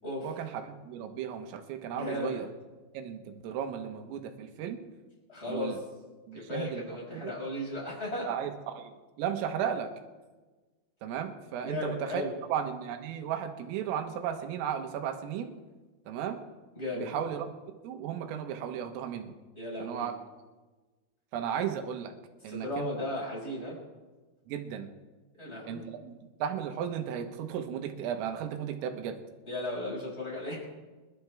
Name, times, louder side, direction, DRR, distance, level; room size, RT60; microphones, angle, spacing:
voice 1, 0.2-2.5 3.0-4.8 5.5-5.8 6.3-6.8 7.1-7.3 8.3-9.9 11.0-12.2 12.5-15.5 16.1-16.4 17.0-17.6 17.8-19.3 19.8-20.1 21.3-22.1 22.4-22.9 24.5-24.9 25.7-29.2, right 8 dB, 80° right, 5 dB, 3.9 m, -35 dB
voice 2, 1.9-2.5 5.3-5.8 6.3-8.3 11.6-12.3 16.7-17.2 19.6-20.1 22.4-23.8 25.4-25.9 29.5-30.6, left 1 dB, 10° left, -4 dB, 6.0 m, -35 dB
28.0 x 12.0 x 3.5 m, 1.3 s
omnidirectional pair, 5.9 m